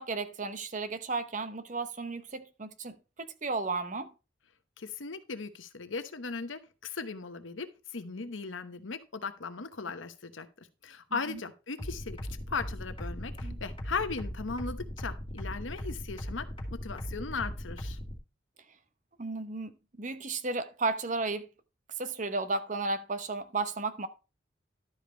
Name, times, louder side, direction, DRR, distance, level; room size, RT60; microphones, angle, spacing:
voice 1, 0.0-4.1 11.1-11.4 13.4-13.6 19.2-21.5 22.0-24.1, right 3 dB, 40° right, 0.8 m, -34 dB
voice 2, 4.8-10.5 10.8-12.2 12.5-18.0, left 4 dB, 80° left, 1.0 m, -38 dB
sound 1, 11.8-18.1, equal, 25° left, 2.3 m, -38 dB
12.0 x 5.2 x 4.4 m
head